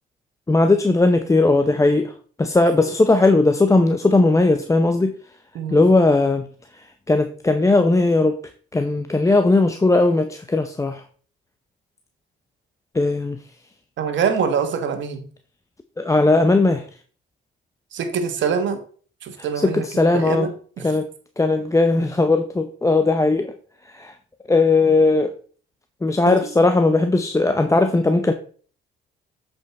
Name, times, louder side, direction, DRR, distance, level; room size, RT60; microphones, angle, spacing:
voice 1, 0.5-2.1 2.4-5.1 5.7-6.5 6.8-8.4 8.7-11.0 12.9-13.4 16.0-16.8 19.6-20.5 20.8-21.1 21.4-23.5 23.9-24.1 24.5-25.3 26.0-28.3, left 2 dB, 15° left, 0.7 m, -18 dB
voice 2, 14.0-15.3 17.9-18.8 19.2-20.9 26.2-26.5, right 6 dB, 70° right, 1.5 m, -25 dB
7.9 x 5.3 x 4.2 m
cardioid pair, 90°, 20 cm